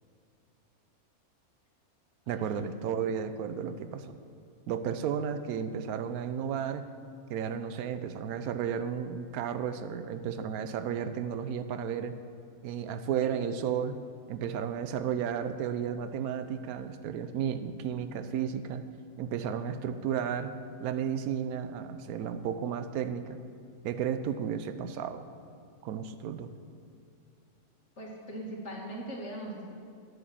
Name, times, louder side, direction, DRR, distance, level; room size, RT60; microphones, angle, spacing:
voice 1, 2.3-4.2 4.7-6.8 7.3-12.1 12.6-14.0 14.3-18.8 19.2-20.5 20.8-23.4 23.8-25.2 25.8-26.5, right 8 dB, 85° right, 10 dB, 1.1 m, -33 dB
voice 2, 28.0-29.7, right 1 dB, 50° left, -3 dB, 2.5 m, -40 dB
10.0 x 8.2 x 7.5 m, 2.4 s
omnidirectional pair, 1.5 m